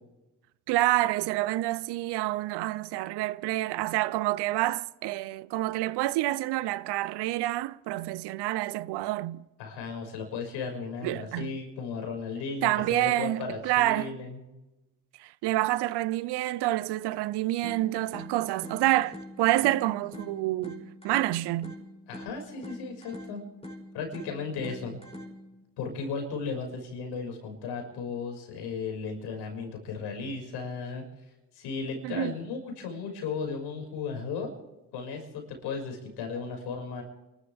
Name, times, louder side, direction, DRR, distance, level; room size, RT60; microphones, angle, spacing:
voice 1, 0.7-9.4 11.0-11.5 12.6-14.1 15.2-21.7 32.0-32.3, right 17 dB, 75° right, 0.8 m, -28 dB
voice 2, 9.6-14.4 22.1-23.4 23.9-25.0 25.8-31.0 31.5-34.5 34.9-37.0, left 5 dB, 85° left, 6.2 m, -35 dB
sound 1, 17.6-25.6, left 1 dB, 15° left, 6.6 m, -45 dB
29.5 x 13.5 x 3.6 m
supercardioid pair, 75°, 40 cm